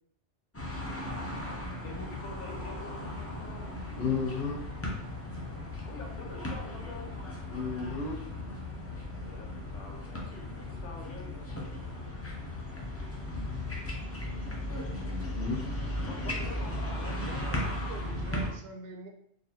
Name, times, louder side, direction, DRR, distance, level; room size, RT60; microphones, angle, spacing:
sound 1, 0.5-18.5, left 1 dB, 20° left, 0.4 m, -36 dB
voice 1, 1.8-3.7 5.5-7.1 9.2-10.3 10.6-11.6 13.7-14.0 16.0-17.2, left 3 dB, 85° left, 0 dB, 1.2 m, -47 dB
voice 2, 4.0-4.6 7.5-8.2 14.9-15.6, left 5 dB, 70° left, -7 dB, 1.5 m, -33 dB
voice 3, 17.2-19.1, right 4 dB, 65° right, 3 dB, 0.7 m, -45 dB
3.9 x 2.6 x 2.8 m, 0.71 s
omnidirectional pair, 1.2 m